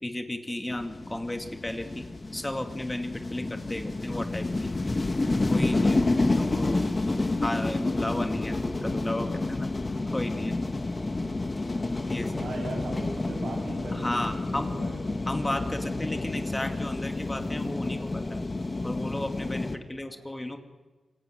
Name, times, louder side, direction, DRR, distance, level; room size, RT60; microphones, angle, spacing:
voice 1, 0.0-4.7 5.5-9.7 10.1-10.5 12.0-12.6 13.9-14.7 15.3-18.4 18.8-20.6, left 1 dB, 15° left, 6 dB, 2.3 m, -34 dB
sound 1, 0.7-19.8, left 2 dB, 30° left, 1.9 m, -29 dB
voice 2, 12.3-15.2 15.7-15.9 20.0-20.3, right 2 dB, 85° right, 2 dB, 7.6 m, -40 dB
26.5 x 23.5 x 9.4 m, 1.3 s
wide cardioid pair, 100°, 0 cm